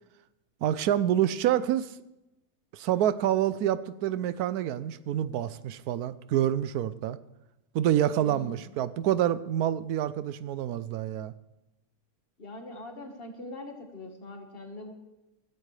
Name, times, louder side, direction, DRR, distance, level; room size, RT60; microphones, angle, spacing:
voice 1, 0.6-2.0 2.7-7.2 7.7-11.3, right 11 dB, 80° right, 15 dB, 1.1 m, -27 dB
voice 2, 8.2-8.7 12.4-14.9, left 2 dB, 40° left, 4 dB, 1.7 m, -42 dB
15.5 x 15.0 x 3.3 m, 0.95 s
omnidirectional pair, 1.6 m